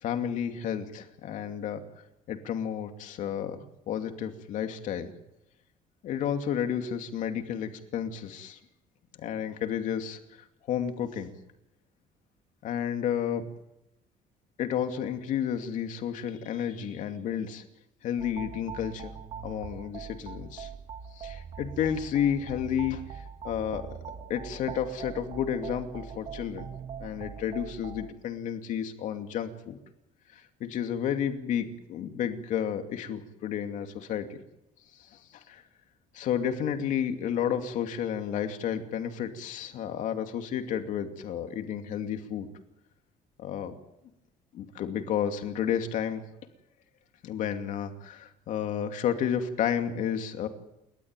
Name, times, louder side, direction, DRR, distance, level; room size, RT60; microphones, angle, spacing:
voice 1, 0.0-1.8 2.3-5.1 6.0-8.6 9.2-11.3 12.6-13.5 14.6-17.6 18.0-19.1 19.4-20.7 21.1-23.9 24.3-26.7 27.0-29.8 30.3-34.4 35.0-35.6 36.1-42.5 43.4-43.7 44.5-46.2 47.2-50.5, left 9 dB, 60° left, 6 dB, 2.6 m, -31 dB
sound 1, 18.2-28.1, right 7 dB, 45° right, 1.7 m, -42 dB
29.5 x 13.0 x 9.0 m, 0.87 s
cardioid pair, 160°, 14 cm